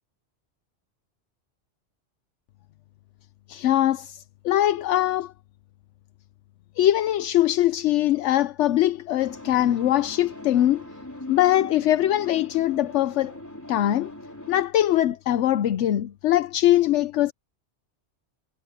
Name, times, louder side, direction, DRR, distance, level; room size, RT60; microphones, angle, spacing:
voice 1, 3.5-5.3 6.8-10.9 11.3-13.3 13.7-14.1 14.5-17.3, left 13 dB, 80° left, 0.9 m, -22 dB
sound 1, 9.2-14.6, left 1 dB, 15° left, 4.4 m, -41 dB
omnidirectional pair, 1.2 m